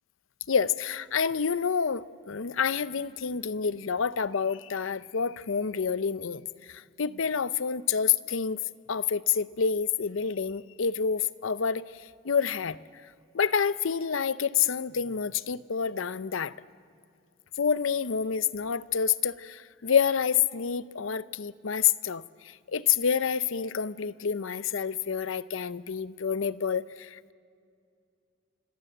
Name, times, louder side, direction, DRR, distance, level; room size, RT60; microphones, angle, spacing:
voice 1, 0.5-8.6 8.9-11.9 12.2-12.8 13.3-16.5 17.6-27.3, left 7 dB, 80° left, 0.6 m, -28 dB
26.5 x 22.0 x 7.8 m
head